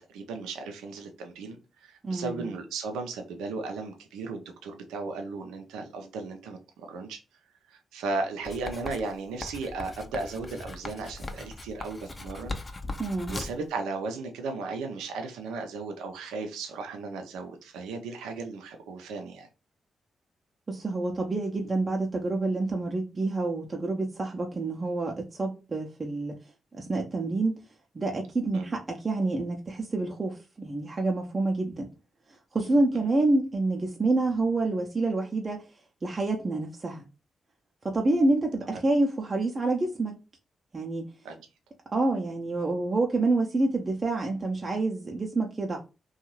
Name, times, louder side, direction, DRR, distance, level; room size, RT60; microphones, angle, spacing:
voice 1, 0.0-7.2 7.7-12.5 13.3-19.5 28.5-28.7 32.9-33.1 41.2-41.3, right 3 dB, 90° right, 0.5 m, -36 dB
voice 2, 2.0-2.5 13.0-13.4 20.7-26.3 26.8-27.6 27.9-31.9 32.5-35.6 36.0-37.0 37.8-40.1 40.7-41.0 41.9-45.8, right 2 dB, 40° right, 0.6 m, -27 dB
Writing, 8.5-13.7, left 2 dB, 35° left, 0.5 m, -39 dB
2.6 x 2.3 x 3.0 m
supercardioid pair, 50°, 0 cm